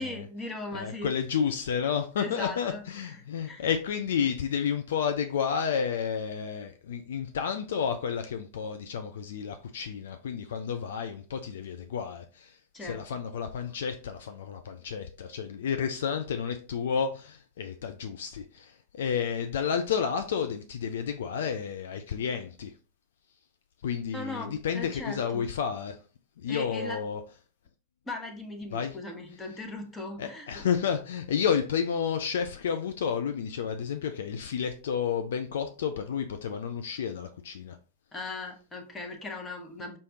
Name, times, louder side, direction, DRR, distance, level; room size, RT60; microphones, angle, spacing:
voice 1, 0.0-1.1 2.2-3.7 12.7-13.2 24.1-25.4 26.5-27.0 28.0-30.6 38.1-40.0, left 2 dB, 15° left, 3 dB, 1.1 m, -39 dB
voice 2, 0.7-12.6 12.9-22.7 23.8-26.0 26.4-27.2 28.7-29.0 30.2-37.8, left 7 dB, 60° left, 7 dB, 0.4 m, -31 dB
5.4 x 3.3 x 2.7 m, 0.35 s
figure-of-eight pair, 90°, 0 cm